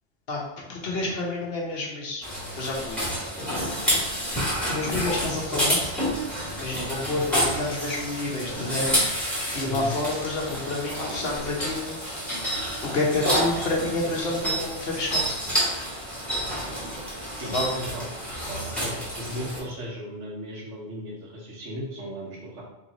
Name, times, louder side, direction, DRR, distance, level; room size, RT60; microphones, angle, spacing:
voice 1, 0.3-2.2 2.6-3.0 4.7-5.9 6.6-8.9 9.5-12.0 12.8-15.4 17.4-17.7, left 2 dB, 60° left, -1 dB, 1.0 m, -29 dB
sound 1, 2.2-19.6, equal, ahead, 1.3 m, -29 dB
voice 2, 17.1-18.1 18.4-22.6, equal, 75° right, -3 dB, 1.4 m, -36 dB
3.2 x 3.1 x 3.8 m, 0.99 s
omnidirectional pair, 1.2 m